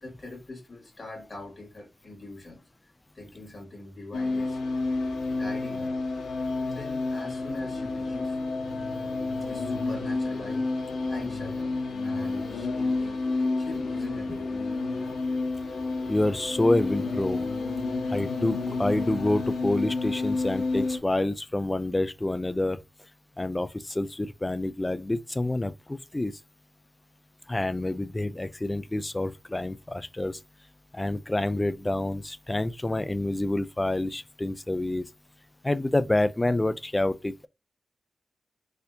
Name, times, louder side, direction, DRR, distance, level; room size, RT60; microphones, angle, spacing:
voice 1, 0.0-4.6 5.3-6.0 6.6-8.4 9.4-11.8 12.0-14.7, left 2 dB, 40° left, 2.0 m, -43 dB
sound 1, 4.1-21.0, left 3 dB, 85° left, 1.0 m, -30 dB
voice 2, 16.1-17.5 18.1-22.8 23.4-26.3 27.5-30.4 30.9-35.1 35.6-37.5, left 1 dB, 20° left, 0.3 m, -28 dB
4.2 x 2.7 x 2.6 m
wide cardioid pair, 90°, 0 cm